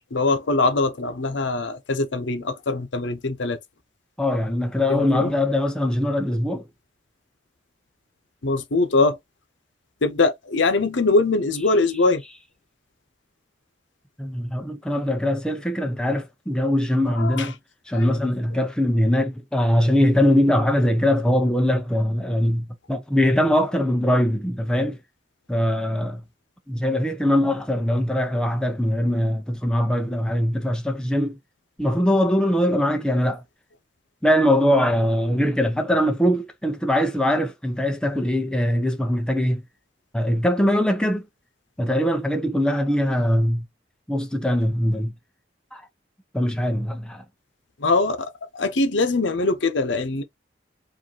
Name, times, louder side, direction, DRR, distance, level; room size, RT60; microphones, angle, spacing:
voice 1, 0.1-3.6 4.9-5.3 8.4-9.2 10.0-12.2 17.2-17.5 17.9-18.0 47.8-50.2, left 3 dB, 80° left, 0.8 m, -22 dB
voice 2, 4.2-6.7 14.2-17.6 17.9-25.0 25.5-26.2 26.7-31.4 31.8-33.4 34.2-39.6 40.1-41.3 41.8-43.7 44.1-45.1 45.7-45.9 46.3-47.2, left 1 dB, 5° left, 0.5 m, -22 dB
4.8 x 2.6 x 2.9 m
head